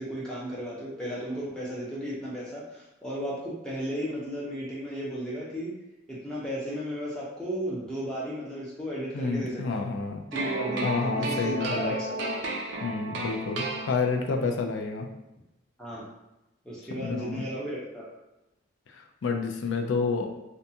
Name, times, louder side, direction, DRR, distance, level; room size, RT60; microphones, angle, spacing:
voice 1, 0.0-5.7 6.1-9.9 10.3-12.4 13.2-13.3 15.8-16.1 16.6-18.1, equal, 5° left, -7 dB, 0.6 m, -34 dB
voice 2, 9.1-10.2 10.8-11.9 12.8-15.1 17.0-17.4 18.9-20.3, left 4 dB, 70° left, 4 dB, 0.4 m, -29 dB
sound 1, 10.3-14.4, right 2 dB, 65° right, 0.4 m, -33 dB
2.5 x 2.3 x 2.7 m, 0.94 s
head